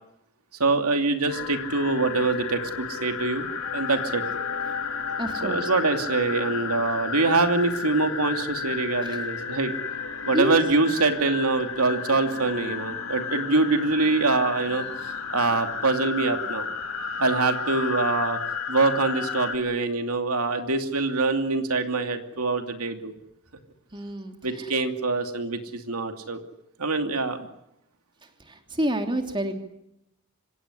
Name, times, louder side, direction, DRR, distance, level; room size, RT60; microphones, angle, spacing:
voice 1, 0.6-3.5 3.7-4.2 5.4-9.7 10.2-16.7 17.2-18.4 18.7-23.1 24.4-26.4 26.8-27.5, right 3 dB, 85° right, 6 dB, 2.7 m, -24 dB
sound 1, 1.3-19.6, left 6 dB, 75° left, 2.9 m, -32 dB
voice 2, 5.2-5.7 9.0-9.2 10.3-10.6 17.0-17.2 23.9-24.8 28.4-29.6, right 1 dB, 20° right, 5 dB, 3.1 m, -29 dB
26.0 x 18.0 x 10.0 m, 0.82 s
head